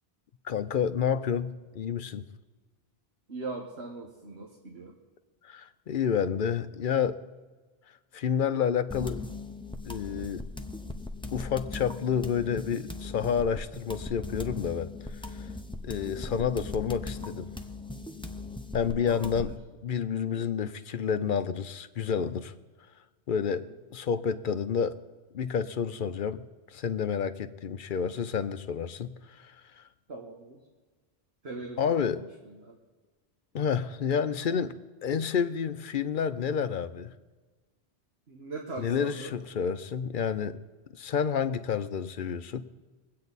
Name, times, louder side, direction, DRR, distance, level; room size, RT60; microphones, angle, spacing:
voice 1, 0.4-2.3 5.4-7.2 8.1-9.2 9.8-10.5 11.3-14.9 15.4-15.5 15.8-17.5 18.7-19.5 19.8-22.5 23.3-25.0 25.3-26.4 26.7-29.8 31.8-32.2 33.5-34.8 35.0-37.1 38.8-40.6 40.9-42.6, left 7 dB, 55° left, 12 dB, 0.7 m, -29 dB
voice 2, 3.3-5.0 16.1-16.4 19.1-19.5 23.5-23.6 30.1-30.6 31.4-32.3 32.5-32.8 38.3-39.3, right 3 dB, 70° right, 0 dB, 1.7 m, -40 dB
sound 1, 8.9-19.6, left 3 dB, 5° left, 0.6 m, -39 dB
22.0 x 8.5 x 4.1 m, 1.3 s
omnidirectional pair, 1.1 m